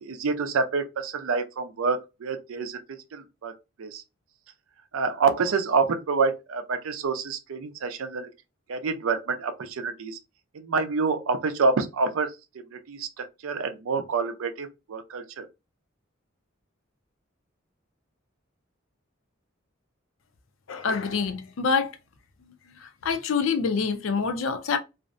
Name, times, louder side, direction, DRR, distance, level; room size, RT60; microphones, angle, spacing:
voice 1, 0.0-2.8 3.1-3.5 3.8-4.0 4.9-8.3 8.7-10.2 10.5-12.3 12.7-15.5, right 4 dB, 85° right, 0.5 m, -27 dB
voice 2, 20.7-21.9 23.0-24.8, left 5 dB, 75° left, 0.4 m, -26 dB
2.5 x 2.0 x 2.5 m
head